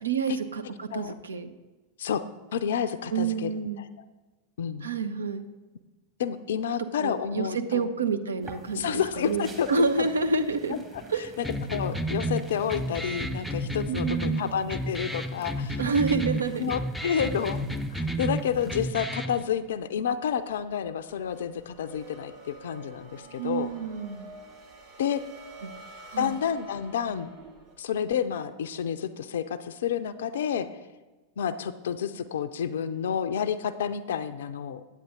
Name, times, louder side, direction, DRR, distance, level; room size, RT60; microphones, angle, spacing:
voice 1, 0.0-1.5 3.1-3.8 4.8-5.4 7.0-10.8 11.1-11.3 13.9-14.5 15.8-16.7 23.4-24.2 25.6-25.7 26.1-26.4, right 4 dB, 70° right, 9 dB, 0.6 m, -28 dB
voice 2, 2.5-3.5 3.8-3.9 4.6-4.9 6.2-7.9 8.7-9.7 10.0-10.1 10.7-10.8 11.4-15.8 16.6-17.6 17.9-23.7 25.0-25.2 26.2-27.3 27.8-30.7 31.4-34.8, left 8 dB, 60° left, 11 dB, 0.4 m, -30 dB
sound 1, 8.4-18.9, right 2 dB, 15° right, 1.4 m, -49 dB
sound 2, 11.4-19.4, right 1 dB, ahead, 0.5 m, -32 dB
sound 3, 19.6-27.8, right 2 dB, 50° right, 2.5 m, -50 dB
9.2 x 8.5 x 3.7 m, 1.2 s
figure-of-eight pair, 90°, 0 cm